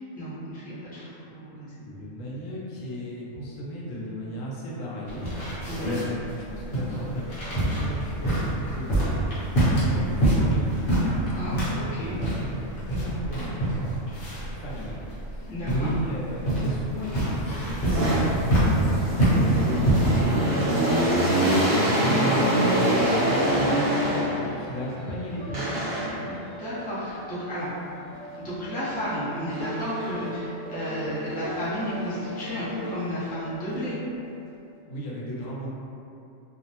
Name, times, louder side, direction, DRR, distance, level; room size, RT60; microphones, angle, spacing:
voice 1, 0.2-1.9 5.7-5.9 11.3-12.2 15.5-15.9 22.2-22.4 26.3-27.7 28.4-34.0, equal, 10° left, -12 dB, 0.4 m, -32 dB
voice 2, 1.8-5.2 5.8-9.2 9.5-10.9 12.0-14.0 14.3-15.0 15.3-23.9 24.2-25.7 34.9-35.7, equal, 80° left, -5 dB, 0.9 m, -36 dB
sound 1, 5.1-20.3, right 1 dB, 50° left, 1.0 m, -26 dB
sound 2, 17.0-24.6 25.5-26.3 29.5-30.3 30.8-33.2, right 1 dB, 35° right, 0.6 m, -25 dB
sound 3, 20.8-26.8 27.1-34.9, right 2 dB, 60° right, 0.9 m, -42 dB
2.5 x 2.0 x 2.8 m, 2.7 s
omnidirectional pair, 1.3 m